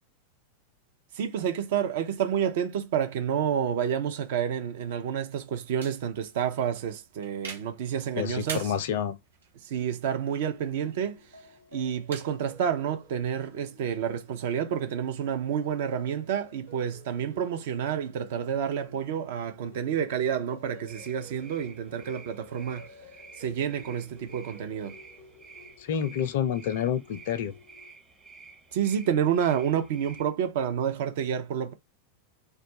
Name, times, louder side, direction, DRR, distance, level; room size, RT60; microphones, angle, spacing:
voice 1, 1.1-8.7 9.6-25.0 28.7-31.7, right 8 dB, 55° right, 0.6 m, -29 dB
sound 1, 5.8-13.4, right 5 dB, 70° right, 0.9 m, -47 dB
voice 2, 8.2-9.2 25.8-27.5, left 9 dB, 55° left, 0.4 m, -28 dB
sound 2, 10.3-27.9, left 3 dB, 90° right, 1.6 m, -53 dB
sound 3, 20.9-30.2, right 4 dB, 10° right, 0.7 m, -51 dB
2.3 x 2.2 x 2.8 m
figure-of-eight pair, 90°, 0 cm